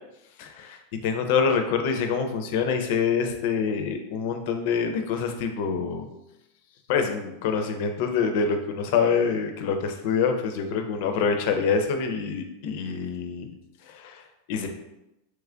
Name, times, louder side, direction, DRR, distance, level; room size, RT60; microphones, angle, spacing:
voice 1, 0.4-6.1 6.9-13.5 13.9-14.7, left 6 dB, 55° left, 6 dB, 0.4 m, -26 dB
3.1 x 2.4 x 3.3 m, 0.90 s
supercardioid pair, 145°, 0 cm